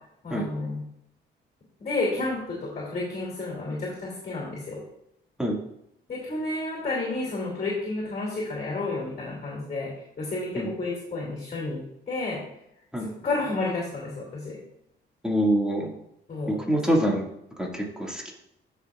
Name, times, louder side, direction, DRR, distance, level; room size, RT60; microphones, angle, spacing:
voice 1, 0.2-0.8 1.8-4.8 6.1-9.9 10.2-11.8 12.1-12.4 13.0-14.6 16.3-16.7, left 2 dB, 35° left, -3 dB, 2.8 m, -31 dB
voice 2, 15.2-15.9 16.5-17.2 17.6-18.3, right 1 dB, 5° right, -2 dB, 2.1 m, -25 dB
13.0 x 5.7 x 2.4 m, 0.79 s
cardioid pair, 90°, 20 cm